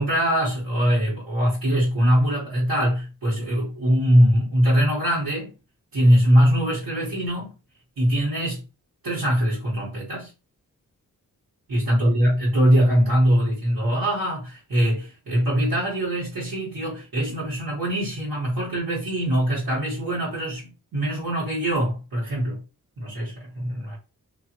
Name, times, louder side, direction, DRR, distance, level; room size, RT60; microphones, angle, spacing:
voice 1, 0.0-5.5 5.9-7.5 8.0-8.6 9.0-10.3 11.7-22.6 23.0-24.0, equal, 80° right, 1.3 m, -22 dB
2.6 x 2.5 x 2.9 m
wide cardioid pair, 150°, 34 cm